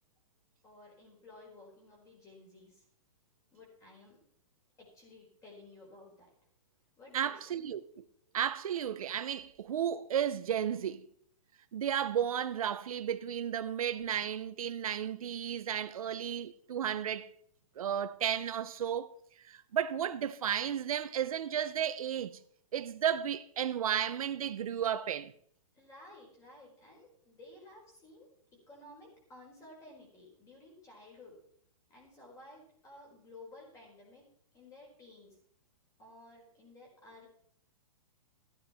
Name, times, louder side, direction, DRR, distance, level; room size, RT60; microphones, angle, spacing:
voice 1, 0.6-2.8 3.5-4.2 4.8-6.3 7.0-7.6 25.7-31.4 31.9-34.2 34.5-35.4 36.0-37.3, left 2 dB, 15° left, 4.4 m, -55 dB
voice 2, 7.1-8.0 8.3-11.1 11.7-17.3 17.8-19.1 19.4-22.4 22.7-25.3, right 9 dB, 75° right, 0.8 m, -33 dB
14.5 x 9.6 x 4.4 m
hypercardioid pair, 160°, 18 cm